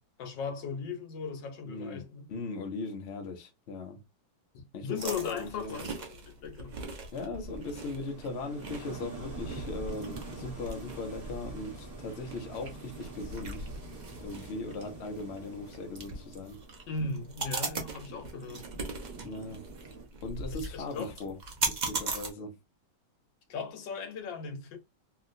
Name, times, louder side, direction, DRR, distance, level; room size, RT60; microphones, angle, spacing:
voice 1, 0.2-2.3 4.5-6.8 16.9-18.7 20.5-21.1 23.5-24.8, left 5 dB, 75° left, 1.5 m, -38 dB
voice 2, 1.6-2.0 2.3-4.0 4.7-5.7 7.1-13.7 14.2-16.6 19.2-19.6 20.2-21.4 21.7-22.6, left 3 dB, 50° left, 0.8 m, -39 dB
sound 1, 5.0-22.3, right 3 dB, 80° right, 0.4 m, -40 dB
sound 2, 7.4-20.0, right 3 dB, 20° right, 1.5 m, -46 dB
3.0 x 2.9 x 2.5 m
omnidirectional pair, 2.0 m